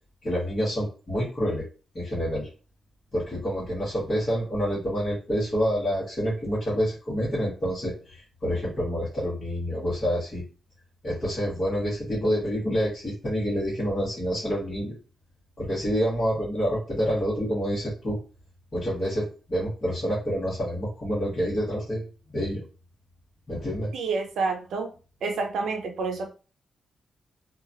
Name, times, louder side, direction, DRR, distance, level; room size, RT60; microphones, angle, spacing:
voice 1, 0.2-1.6 1.9-2.5 3.1-10.4 11.0-14.9 15.6-18.2 18.7-22.0 22.3-22.6 23.5-23.9, equal, 30° left, -10 dB, 1.2 m, -27 dB
voice 2, 23.9-24.9 25.2-26.3, right 4 dB, 80° right, 4 dB, 0.5 m, -28 dB
2.9 x 2.3 x 2.5 m, 0.36 s
wide cardioid pair, 155°, 0 cm